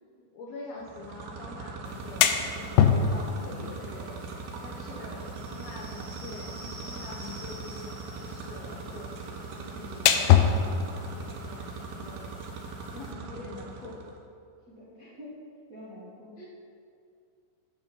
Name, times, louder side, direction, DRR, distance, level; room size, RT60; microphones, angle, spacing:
voice 1, 0.1-4.3 4.6-9.1 9.5-12.3 12.6-14.0 16.4-16.5, left 2 dB, 70° left, -3 dB, 1.7 m, -45 dB
sound 1, 0.8-14.2, right 4 dB, 75° right, 2.0 m, -40 dB
sound 2, 1.9-13.1, left 8 dB, 85° left, 2.2 m, -29 dB
voice 2, 4.9-5.4 5.6-5.9 6.8-7.0 8.3-8.8 9.1-9.3 13.1-13.4 14.7-15.4 15.7-16.3, left 1 dB, 50° right, -10 dB, 1.0 m, -49 dB
sound 3, 5.3-12.5, right 2 dB, 20° right, 1.5 m, -50 dB
11.5 x 3.9 x 5.3 m, 2.4 s
omnidirectional pair, 3.7 m